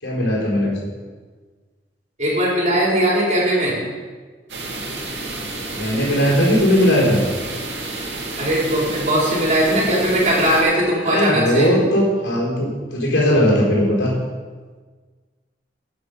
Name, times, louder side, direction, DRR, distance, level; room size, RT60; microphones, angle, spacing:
voice 1, 0.0-0.9 5.7-7.2 11.0-14.2, equal, 80° left, -3 dB, 4.3 m, -18 dB
voice 2, 2.2-3.8 8.4-11.7, right 1 dB, 45° right, -4 dB, 4.0 m, -19 dB
sound 1, 4.5-10.6, right 2 dB, 75° right, 2.3 m, -30 dB
14.0 x 8.0 x 5.4 m, 1.5 s
head